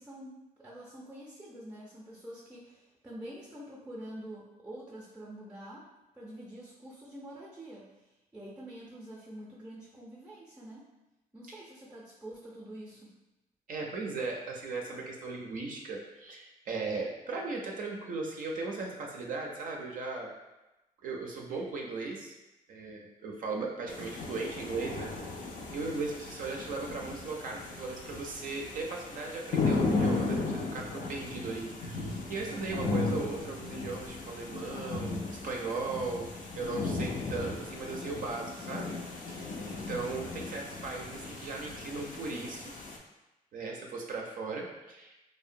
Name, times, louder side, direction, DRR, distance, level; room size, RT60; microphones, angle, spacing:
voice 1, 0.0-5.9 6.1-7.9 8.3-10.9 11.3-13.2 32.5-32.8, right 1 dB, 10° right, -4 dB, 0.5 m, -46 dB
voice 2, 13.7-20.3 21.0-22.3 22.7-25.1 25.7-39.0 39.3-42.7 43.5-45.1, right 3 dB, 65° right, 0 dB, 0.4 m, -37 dB
sound 1, 23.9-43.0, left 3 dB, 60° left, 0.4 m, -36 dB
2.7 x 2.1 x 2.5 m, 1.0 s
cardioid pair, 90°, 15 cm